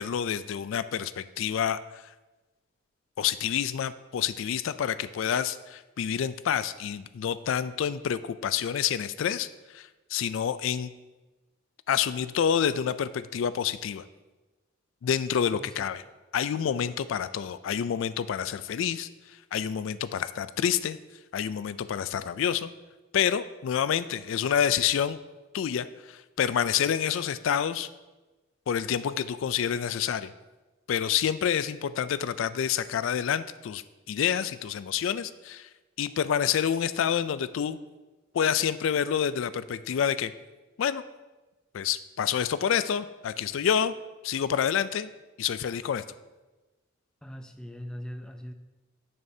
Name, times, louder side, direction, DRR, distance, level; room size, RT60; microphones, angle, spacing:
voice 1, 0.0-2.0 3.2-10.9 11.9-14.0 15.0-16.0 16.3-21.0 21.3-22.7 23.1-25.2 25.5-27.9 28.7-30.3 30.9-35.7 36.0-37.8 38.3-40.3 40.8-41.0 41.7-43.9 44.2-45.1 45.4-46.0, left 8 dB, 75° left, 14 dB, 0.3 m, -28 dB
voice 2, 15.5-15.8 47.2-48.5, equal, 5° left, 6 dB, 0.4 m, -41 dB
10.5 x 6.7 x 2.7 m, 1.2 s
head